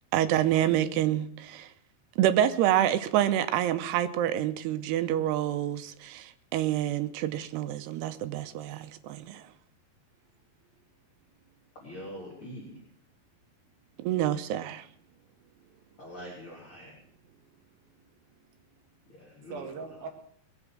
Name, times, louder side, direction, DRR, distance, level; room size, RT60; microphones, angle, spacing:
voice 1, 0.1-1.7 2.2-9.4 14.0-14.8, right 12 dB, 85° right, 2.9 m, -27 dB
voice 2, 11.7-12.8 16.0-16.9 19.1-20.1, equal, 35° left, 3.9 m, -44 dB
voice 3, 15.0-15.9 17.4-18.1 18.4-18.8 19.5-20.1, right 5 dB, 70° right, 2.8 m, -45 dB
20.5 x 8.1 x 6.1 m
omnidirectional pair, 4.7 m